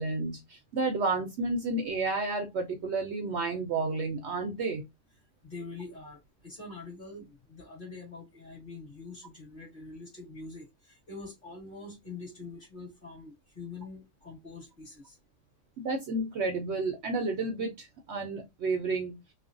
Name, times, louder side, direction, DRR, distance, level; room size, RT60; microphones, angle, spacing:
voice 1, 0.0-4.8 15.8-19.2, right 3 dB, 65° right, 4 dB, 0.8 m, -31 dB
voice 2, 5.4-15.2, left 3 dB, 40° left, -2 dB, 1.8 m, -45 dB
3.2 x 2.1 x 2.4 m, 0.20 s
omnidirectional pair, 1.4 m